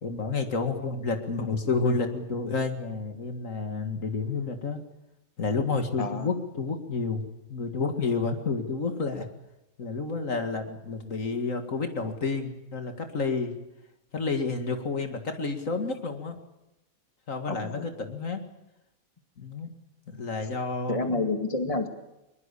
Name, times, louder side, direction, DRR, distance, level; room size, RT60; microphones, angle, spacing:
voice 1, 0.0-4.8 5.4-7.2 7.5-9.3 9.8-13.5 14.1-16.4 17.3-18.4 19.4-19.7 20.1-21.3, left 4 dB, 65° left, 6 dB, 2.4 m, -30 dB
voice 2, 6.0-6.3 17.5-17.9 20.4-20.5 20.9-21.9, left 3 dB, 25° left, 6 dB, 2.0 m, -29 dB
22.0 x 22.0 x 8.4 m, 0.93 s
omnidirectional pair, 1.5 m